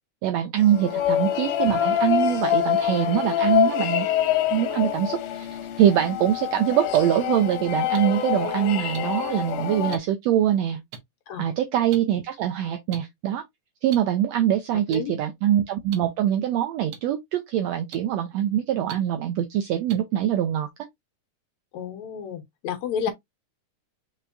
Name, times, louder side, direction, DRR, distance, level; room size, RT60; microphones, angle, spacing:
voice 1, 0.2-4.1 4.5-10.8 11.4-13.4 13.8-20.7, right 11 dB, 80° right, 1.5 m, -23 dB
sound 1, 0.6-10.0, left 10 dB, 90° left, 2.2 m, -25 dB
sound 2, 6.9-7.0 7.9-8.0 8.9-9.0 9.9-10.0 10.9-11.0 11.9-12.0 12.9-13.0 13.9-14.0 14.9-15.0 15.9-16.0 16.9-17.0 17.9-18.0 18.9-19.0 19.9-20.0, right 8 dB, 65° right, 1.9 m, -38 dB
voice 2, 21.7-23.1, left 8 dB, 70° left, 2.1 m, -31 dB
4.6 x 4.4 x 2.5 m
omnidirectional pair, 3.6 m